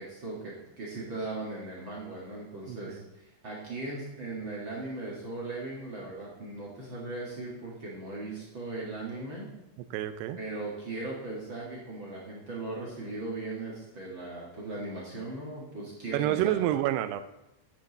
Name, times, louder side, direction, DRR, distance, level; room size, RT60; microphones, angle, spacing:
voice 1, 0.0-9.5 10.4-16.6, right 2 dB, 40° right, -5 dB, 2.0 m, -38 dB
voice 2, 2.7-3.0 9.9-10.4 16.1-17.2, right 13 dB, 85° right, 12 dB, 2.7 m, -28 dB
11.5 x 9.1 x 4.1 m, 0.92 s
omnidirectional pair, 4.8 m